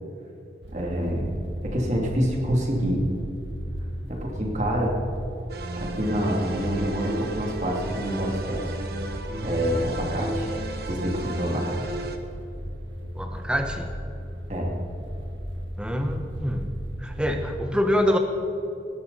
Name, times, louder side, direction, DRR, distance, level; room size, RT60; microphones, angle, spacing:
sound 1, 0.6-17.5, equal, 80° right, 2.0 m, -36 dB
voice 1, 0.7-1.3 1.6-3.0 4.1-5.0 5.8-8.7 9.4-10.5 10.9-12.0 14.5-14.7, equal, 40° right, -1 dB, 2.8 m, -27 dB
sound 2, 5.5-12.2, right 1 dB, 55° right, 1.3 m, -34 dB
voice 2, 13.1-13.9 15.8-16.7 17.0-18.2, equal, 5° right, 4 dB, 1.2 m, -25 dB
19.5 x 13.0 x 4.2 m, 2.9 s
head